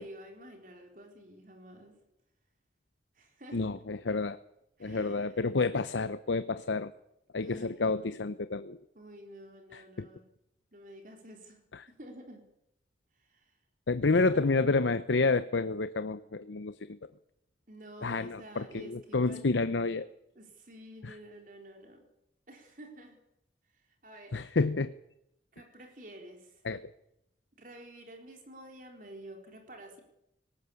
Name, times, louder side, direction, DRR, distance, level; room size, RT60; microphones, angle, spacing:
voice 1, 0.0-2.0 3.1-3.6 4.8-5.4 7.4-7.7 8.9-10.2 10.7-11.6 11.9-12.4 13.1-13.6 14.0-14.7 17.7-19.5 20.4-22.1 22.5-23.2 23.7-24.5 25.5-26.6 27.6-30.0, right 1 dB, 45° right, 4 dB, 3.8 m, -50 dB
voice 2, 3.5-4.4 4.8-6.9 7.3-8.8 9.7-10.1 11.7-11.8 13.9-17.0 18.0-20.1 21.0-21.1 24.3-24.9 26.6-26.9, left 3 dB, 90° left, 12 dB, 0.7 m, -29 dB
19.5 x 17.5 x 8.3 m, 0.81 s
head